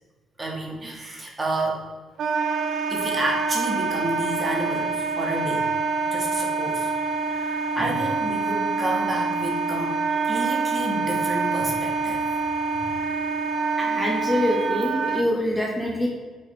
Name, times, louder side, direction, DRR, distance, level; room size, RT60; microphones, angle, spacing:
voice 1, 0.4-1.9 2.9-5.7 6.1-6.9 7.3-9.9 10.3-12.2, right 1 dB, 25° right, -1 dB, 1.9 m, -30 dB
Wind instrument woodwind instrument, 2.2-15.2, right 4 dB, 65° right, 0.6 m, -26 dB
voice 2, 13.8-16.1, left 1 dB, ahead, -2 dB, 1.7 m, -25 dB
8.6 x 5.0 x 3.5 m, 1.4 s
cardioid pair, 90°, 0 cm